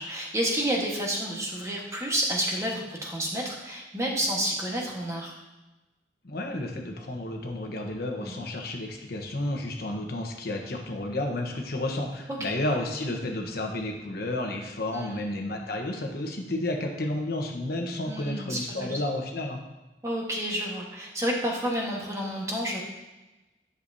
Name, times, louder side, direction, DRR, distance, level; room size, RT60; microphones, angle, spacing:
voice 1, 0.0-5.3 8.2-8.5 12.4-12.5 14.9-15.3 18.1-19.0 20.0-22.8, equal, 20° right, -2 dB, 1.4 m, -30 dB
voice 2, 6.2-19.6, left 1 dB, 60° left, 2 dB, 1.0 m, -31 dB
10.0 x 6.9 x 2.7 m, 1.1 s
head